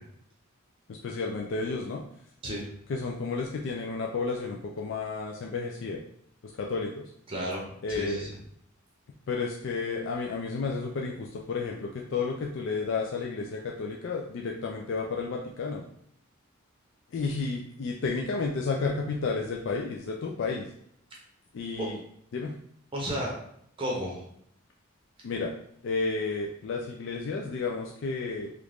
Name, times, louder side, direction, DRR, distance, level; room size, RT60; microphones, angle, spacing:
voice 1, 0.9-2.0 2.9-6.0 6.4-7.1 7.8-8.3 9.3-15.8 17.1-20.7 21.5-22.0 22.3-22.6 25.2-25.5 25.8-28.5, left 4 dB, 60° left, 0 dB, 0.3 m, -32 dB
voice 2, 7.3-7.6 7.9-8.4 21.8-21.9 22.9-23.3 23.8-24.2, equal, 25° right, -3 dB, 0.6 m, -32 dB
3.0 x 2.5 x 3.4 m, 0.69 s
head